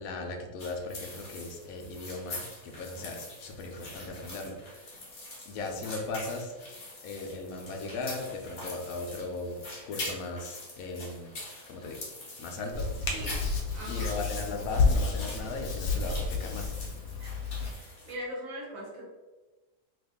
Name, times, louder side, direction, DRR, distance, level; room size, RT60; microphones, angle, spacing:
voice 1, 0.0-4.9 5.5-6.5 7.0-11.3 11.7-12.0 12.4-13.1 13.9-16.7, left 3 dB, 70° left, 2 dB, 1.0 m, -38 dB
sound 1, 0.6-18.1, left 2 dB, 45° left, 0.9 m, -44 dB
Hands, 12.7-17.7, left 4 dB, 90° left, 0.5 m, -30 dB
voice 2, 13.7-14.2 16.5-16.7 17.2-17.3 17.8-19.0, equal, 55° right, -3 dB, 1.2 m, -40 dB
3.0 x 2.5 x 3.4 m, 1.2 s
omnidirectional pair, 1.8 m